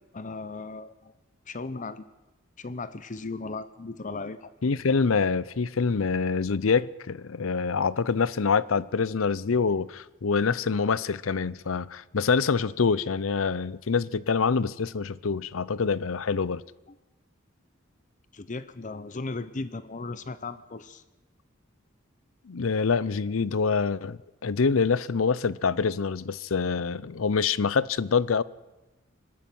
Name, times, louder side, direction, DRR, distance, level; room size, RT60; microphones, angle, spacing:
voice 1, 0.1-1.1 1.5-2.1 2.6-4.5 16.9-17.0 18.3-21.0, left 3 dB, 40° left, 0.8 m, -36 dB
voice 2, 4.6-16.6 22.5-28.4, left 5 dB, 80° left, 0.6 m, -26 dB
24.0 x 12.5 x 9.3 m
head